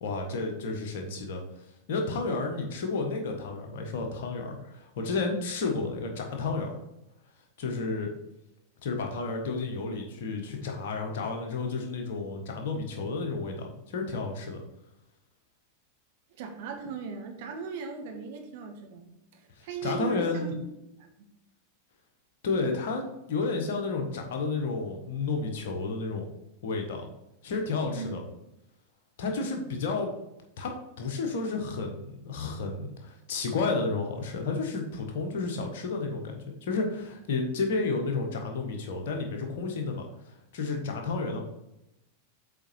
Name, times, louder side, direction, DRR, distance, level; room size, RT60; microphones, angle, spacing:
voice 1, 0.0-1.4 1.9-6.8 7.6-8.1 8.8-14.6 19.6-20.5 22.4-23.0 23.3-26.3 26.6-27.1 27.4-28.2 29.2-30.1 30.6-41.4, left 3 dB, 55° left, 3 dB, 1.5 m, -31 dB
voice 2, 16.4-21.3 27.9-28.1, right 5 dB, 50° right, 3 dB, 1.4 m, -38 dB
7.7 x 4.5 x 4.6 m, 0.87 s
figure-of-eight pair, 90°, 0 cm